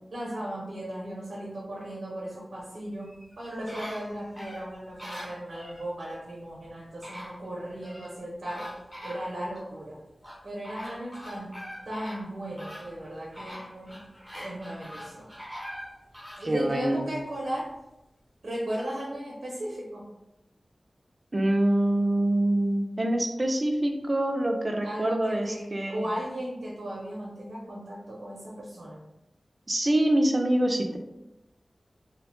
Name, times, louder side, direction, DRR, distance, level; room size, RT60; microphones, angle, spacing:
voice 1, 0.1-8.7 9.0-10.0 10.4-11.5 11.9-14.1 14.3-15.3 16.4-17.7 18.4-20.1 24.8-29.0, right 1 dB, 85° right, -5 dB, 0.6 m, -36 dB
sound 1, 3.0-5.9 6.6-6.7 7.0-8.1 8.5-9.7 10.2-16.5 17.0-17.1, equal, 10° left, 0.9 m, -43 dB
voice 2, 16.4-17.0 21.3-26.1 29.7-31.0, right 1 dB, 45° right, 4 dB, 0.4 m, -25 dB
2.6 x 2.1 x 2.9 m, 0.91 s
cardioid pair, 40°, 0 cm